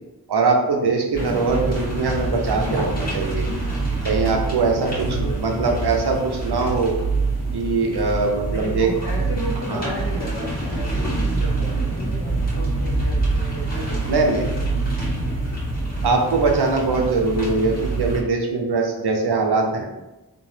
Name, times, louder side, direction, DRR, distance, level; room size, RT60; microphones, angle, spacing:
voice 1, 0.3-3.5 4.0-5.1 5.3-7.0 7.5-8.9 9.7-9.9 14.1-14.4 16.0-19.9, right 4 dB, 80° right, 1 dB, 0.6 m, -22 dB
sound 1, 1.1-18.2, right 2 dB, 25° left, 1.3 m, -25 dB
voice 2, 4.7-5.5 8.5-14.6, equal, 75° left, -3 dB, 1.0 m, -34 dB
2.9 x 2.1 x 3.1 m, 1.0 s
wide cardioid pair, 60°, 39 cm